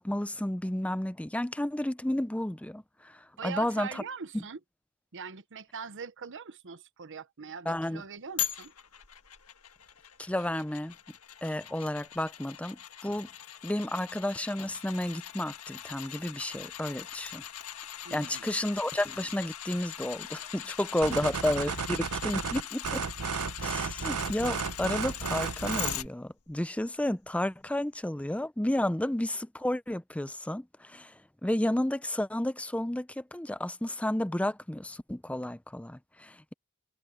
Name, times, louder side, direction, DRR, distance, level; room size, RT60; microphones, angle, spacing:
voice 1, 0.0-4.0 4.3-4.4 7.7-8.0 10.2-10.9 11.4-13.3 13.6-17.4 18.1-23.0 23.6-31.1 31.4-36.5, left 1 dB, 5° left, 0.6 m, -32 dB
voice 2, 3.4-4.6 5.1-8.7 18.0-18.6 21.0-21.3, right 5 dB, 60° right, 0.9 m, -42 dB
sound 1, 8.4-26.1 26.5-26.6, left 11 dB, 90° left, 1.5 m, -41 dB
sound 2, 21.0-26.1, right 5 dB, 90° right, 0.9 m, -33 dB
head